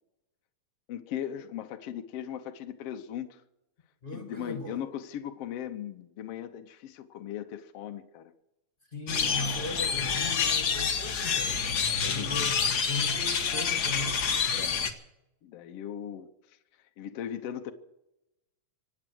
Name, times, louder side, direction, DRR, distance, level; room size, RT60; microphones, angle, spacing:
voice 1, 0.9-3.4 4.1-8.3 12.0-12.5 14.5-14.9 15.4-16.6 17.0-17.7, left 10 dB, 65° left, 1.7 m, -38 dB
voice 2, 4.0-4.8 8.9-14.3, left 2 dB, 20° left, 1.5 m, -38 dB
sound 1, 9.1-14.9, left 6 dB, 50° left, 1.3 m, -28 dB
25.5 x 8.8 x 6.2 m
omnidirectional pair, 3.3 m